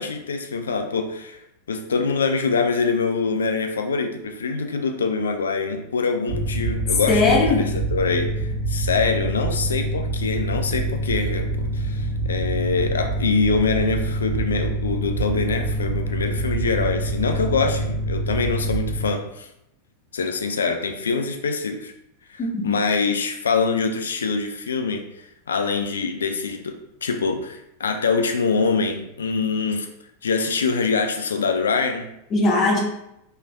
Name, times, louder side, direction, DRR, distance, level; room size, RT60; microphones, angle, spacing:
voice 1, 0.0-1.4 1.7-19.5 20.1-21.9 22.3-25.1 25.5-29.9 30.2-32.1, left 4 dB, 70° left, 6 dB, 0.3 m, -24 dB
Mechanical fan, 6.3-19.0, right 2 dB, 50° right, 1.4 m, -26 dB
voice 2, 7.1-7.7 22.4-22.7 32.3-32.8, left 3 dB, 30° left, 0 dB, 0.7 m, -19 dB
3.1 x 2.8 x 2.5 m, 0.82 s
figure-of-eight pair, 90°, 0 cm